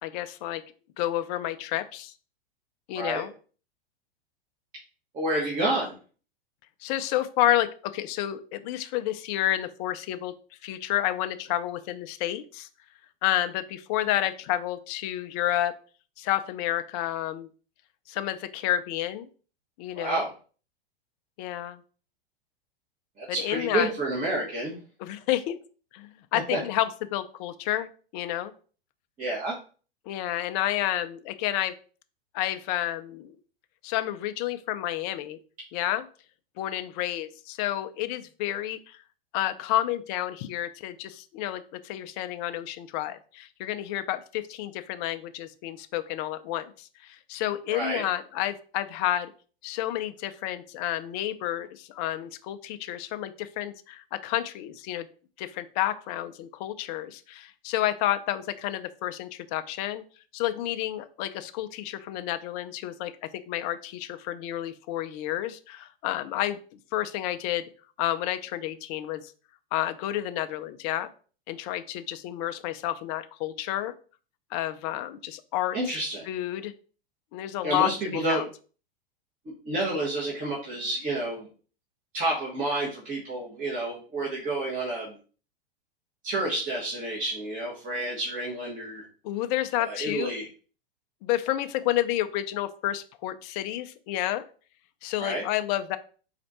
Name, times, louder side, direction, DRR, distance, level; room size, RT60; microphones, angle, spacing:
voice 1, 0.0-0.6 1.0-2.1 2.9-3.3 6.8-10.3 10.6-12.7 13.2-15.7 16.2-17.5 18.1-19.3 19.8-20.2 21.4-21.8 23.4-23.9 25.0-25.6 25.9-27.9 28.1-28.5 30.1-31.7 32.3-33.4 33.8-35.4 35.7-36.0 36.6-39.0 39.3-49.3 49.6-55.1 55.4-60.0 60.3-66.6 66.9-67.6 68.0-69.2 69.7-71.1 71.5-73.9 74.5-76.0 76.3-76.7 77.3-77.9 78.3-78.5 89.2-90.3 91.2-94.5 95.0-96.0, left 13 dB, 40° left, 10 dB, 0.5 m, -30 dB
voice 2, 5.1-6.0 19.9-20.3 23.2-24.8 26.5-26.6 29.2-29.6 47.7-48.0 75.7-76.3 77.6-78.4 79.6-81.5 82.1-85.2 86.2-89.1 89.8-90.5 95.2-95.4, right 1 dB, 25° right, -4 dB, 1.3 m, -29 dB
4.3 x 2.5 x 4.1 m, 0.39 s
hypercardioid pair, 120°, 31 cm